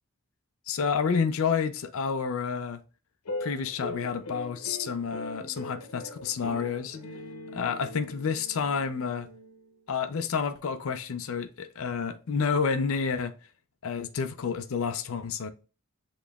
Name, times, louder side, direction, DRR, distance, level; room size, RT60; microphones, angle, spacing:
voice 1, 0.7-2.8 3.4-7.0 7.5-9.3 9.9-13.3 13.8-15.5, left 6 dB, 70° left, 0.4 m, -29 dB
sound 1, 3.2-9.8, left 2 dB, 85° left, 0.9 m, -40 dB
7.0 x 3.0 x 2.3 m
head